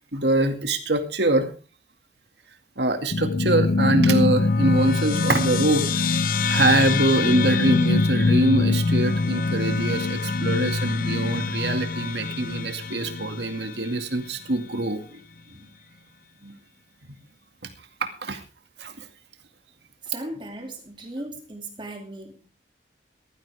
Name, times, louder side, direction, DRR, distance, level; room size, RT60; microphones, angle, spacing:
voice 1, 0.1-1.5 2.8-6.1 6.5-15.2 16.4-16.5 18.0-18.4 18.8-19.0, right 2 dB, 70° right, 6 dB, 2.2 m, -24 dB
sound 1, 3.1-13.9, left 3 dB, 50° left, 0.7 m, -23 dB
voice 2, 19.8-22.5, right 1 dB, 25° right, 3 dB, 2.5 m, -37 dB
18.0 x 14.0 x 3.5 m, 0.34 s
head